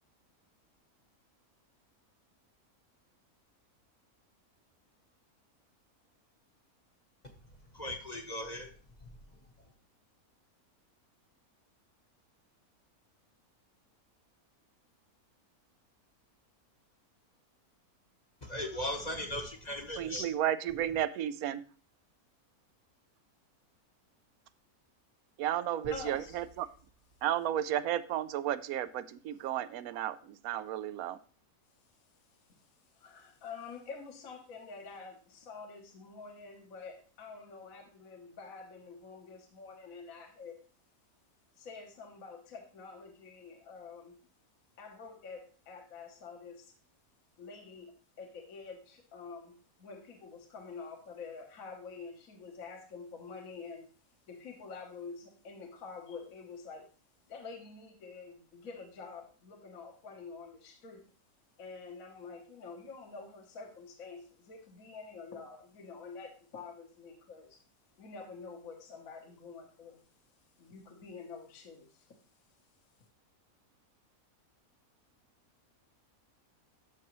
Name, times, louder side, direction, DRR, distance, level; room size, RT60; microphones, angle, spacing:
voice 1, 7.7-8.7 18.4-20.3, left 1 dB, 30° left, 4 dB, 1.0 m, -37 dB
voice 2, 20.0-21.6 25.4-26.7 27.2-31.2, right 11 dB, 75° right, 15 dB, 1.0 m, -33 dB
sound 1, 25.8-28.7, right 2 dB, 50° right, 1.3 m, -56 dB
voice 3, 25.9-26.4 32.3-40.6 41.6-44.2 44.8-46.7 47.4-53.9 54.3-56.9 57.3-61.0 61.6-67.6 68.0-70.0 70.6-72.2, left 4 dB, 65° left, 3 dB, 1.5 m, -47 dB
12.5 x 5.9 x 3.0 m, 0.40 s
omnidirectional pair, 1.6 m